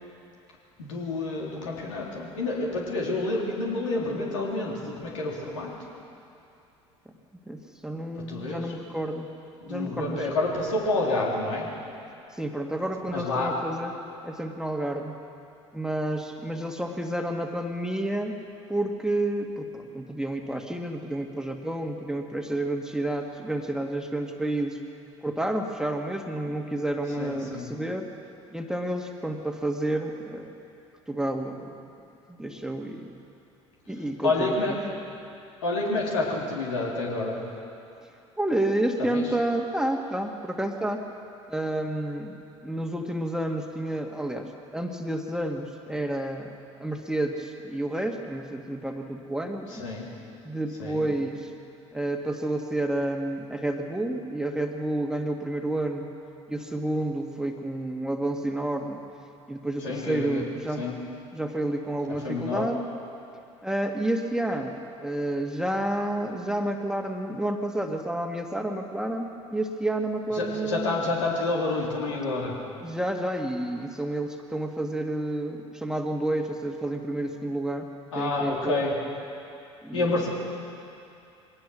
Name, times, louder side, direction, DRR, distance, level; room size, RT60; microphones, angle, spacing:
voice 1, 0.8-5.7 8.3-8.7 9.6-11.7 13.1-13.5 27.2-27.7 34.2-34.8 35.6-37.4 39.1-39.2 49.7-50.1 50.8-51.0 59.8-60.4 60.8-61.0 62.2-62.7 70.3-72.6 78.1-78.9 79.9-80.3, left 2 dB, 75° left, -3 dB, 3.7 m, -28 dB
voice 2, 7.5-9.3 9.7-10.3 12.3-13.9 14.2-15.2 15.7-18.3 18.7-24.8 25.2-28.1 28.5-30.5 31.1-31.7 32.3-33.1 33.9-34.8 38.4-41.1 41.5-42.4 42.6-46.5 46.8-49.8 50.4-51.5 51.9-56.1 56.5-59.0 59.5-60.9 61.3-62.8 63.6-71.1 72.8-77.9 78.2-78.8 79.8-80.1, right 1 dB, 5° right, 3 dB, 1.9 m, -30 dB
22.5 x 18.5 x 6.3 m, 2.7 s
figure-of-eight pair, 60°, 16 cm